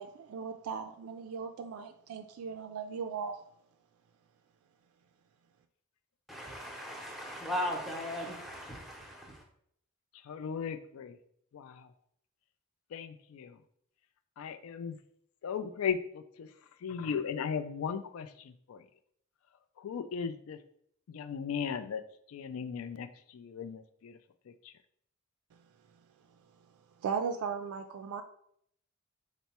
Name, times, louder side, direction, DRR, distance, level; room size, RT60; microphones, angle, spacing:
voice 1, 0.0-3.4 27.0-28.2, right 6 dB, 75° right, 7 dB, 0.3 m, -37 dB
voice 2, 6.3-9.4, equal, ahead, 0 dB, 0.7 m, -38 dB
voice 3, 10.3-11.2 11.5-11.9 12.9-13.5 14.4-15.0 15.4-16.5 16.8-18.8 19.8-20.6 21.1-22.0 22.3-23.1 23.3-24.2 24.6-24.7, left 6 dB, 70° left, 11 dB, 0.3 m, -37 dB
4.4 x 2.0 x 4.1 m, 0.68 s
head